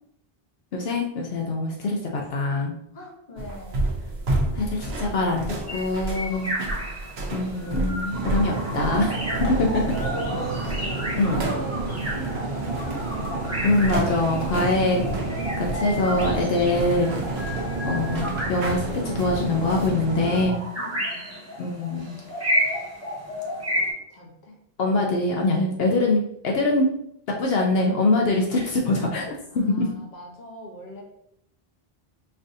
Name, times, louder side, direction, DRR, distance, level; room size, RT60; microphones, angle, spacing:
voice 1, 0.7-2.7 4.5-6.5 7.3-9.1 9.5-9.9 11.2-11.4 13.6-17.1 17.8-20.6 21.6-22.8 24.8-26.9 27.4-29.9, left 2 dB, 75° left, 0 dB, 0.8 m, -24 dB
voice 2, 2.9-3.9 6.4-6.9 9.5-9.8 10.0-13.0 20.8-21.2 24.1-24.6 29.5-31.0, equal, 45° left, 0 dB, 0.9 m, -39 dB
sound 1, 3.4-19.9, right 2 dB, 80° right, 1.0 m, -32 dB
sound 2, 5.7-23.9, equal, 15° right, 1.0 m, -32 dB
sound 3, 8.1-20.5, right 3 dB, 45° right, 0.9 m, -31 dB
5.4 x 2.6 x 2.6 m, 0.76 s
omnidirectional pair, 1.0 m